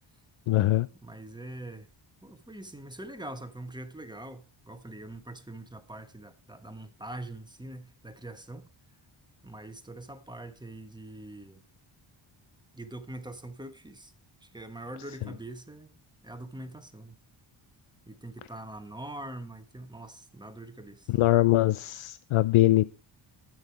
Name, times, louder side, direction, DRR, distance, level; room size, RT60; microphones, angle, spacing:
voice 1, 0.5-0.9 21.1-22.8, left 15 dB, 80° left, 0.6 m, -22 dB
voice 2, 1.0-1.9 2.2-8.7 9.4-11.6 12.7-14.1 14.4-15.9 16.2-17.2 18.1-21.1, right 1 dB, 10° right, 1.4 m, -43 dB
12.5 x 9.0 x 4.7 m
wide cardioid pair, 110°, 48 cm